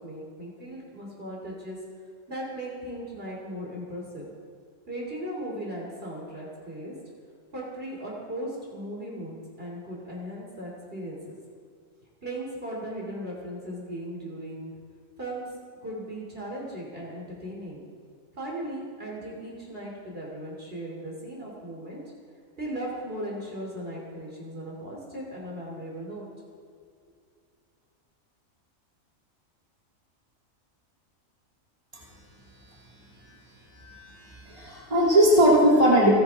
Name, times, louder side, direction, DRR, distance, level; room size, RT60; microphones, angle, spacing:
voice 1, 0.0-1.8 2.3-4.2 4.9-6.9 7.5-11.4 12.2-14.7 15.2-15.5 15.8-17.8 18.3-22.0 22.6-26.3, right 1 dB, 45° right, -3 dB, 3.4 m, -37 dB
voice 2, 33.8-36.1, right 1 dB, 25° right, -5 dB, 3.4 m, -20 dB
30.0 x 10.5 x 3.7 m, 2.2 s
omnidirectional pair, 1.4 m